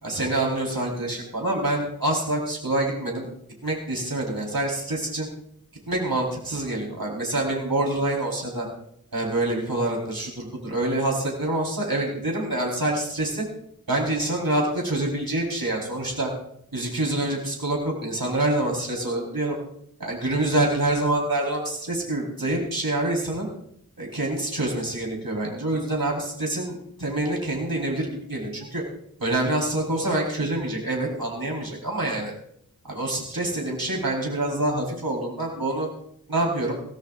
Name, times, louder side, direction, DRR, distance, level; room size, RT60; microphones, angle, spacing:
voice 1, 0.0-3.3 3.6-5.3 5.9-8.7 9.1-13.4 13.9-16.3 16.7-19.6 20.0-23.5 24.0-28.8 29.2-32.3 32.9-35.9 36.3-36.7, right 1 dB, 70° right, -2 dB, 4.5 m, -26 dB
23.0 x 17.0 x 2.6 m, 0.72 s
wide cardioid pair, 45°, 36 cm